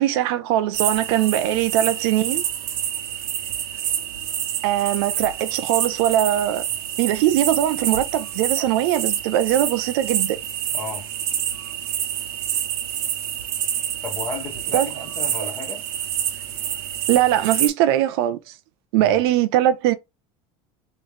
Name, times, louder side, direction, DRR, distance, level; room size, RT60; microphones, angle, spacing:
voice 1, 0.0-2.4 4.6-6.6 7.0-10.4 14.7-14.9 17.1-18.4 18.9-19.9, right 12 dB, 75° right, 0.6 m, -21 dB
sound 1, 0.7-17.7, right 10 dB, 90° right, 1.2 m, -27 dB
voice 2, 10.7-11.1 14.0-15.9 18.9-19.2, left 4 dB, 15° left, 1.4 m, -34 dB
3.9 x 3.1 x 3.3 m
cardioid pair, 180°, 13 cm